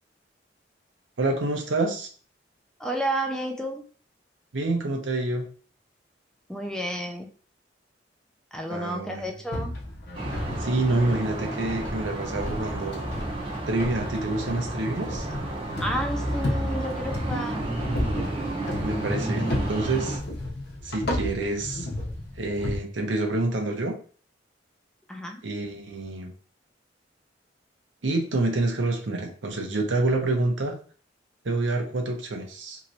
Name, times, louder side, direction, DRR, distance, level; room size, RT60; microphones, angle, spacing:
voice 1, 1.2-2.1 4.5-5.5 8.7-9.3 10.6-13.0 13.7-15.3 18.8-20.2 20.8-21.9 22.4-23.9 25.4-26.3 28.0-30.7 31.4-32.8, right 2 dB, 85° right, 2 dB, 0.7 m, -27 dB
voice 2, 2.8-3.8 6.5-7.3 8.5-9.7 15.8-17.6 25.1-25.4, right 1 dB, 5° left, 2 dB, 0.4 m, -31 dB
sound 1, 9.5-22.8, left 1 dB, 60° left, 0.8 m, -33 dB
sound 2, 10.1-20.2, right 2 dB, 30° right, 0.8 m, -32 dB
3.0 x 2.9 x 2.6 m, 0.42 s
head